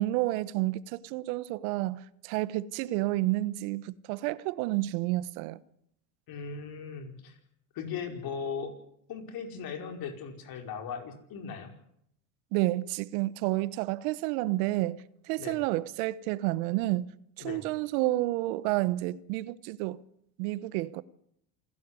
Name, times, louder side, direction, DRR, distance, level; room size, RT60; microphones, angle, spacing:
voice 1, 0.0-5.6 12.5-20.0 20.4-21.0, right 17 dB, 75° right, 1.1 m, -30 dB
voice 2, 6.3-7.4 7.7-8.7 9.1-11.7 15.4-15.6 17.4-17.6, left 6 dB, 55° left, 5.2 m, -38 dB
27.5 x 12.0 x 9.6 m
supercardioid pair, 105°, 43 cm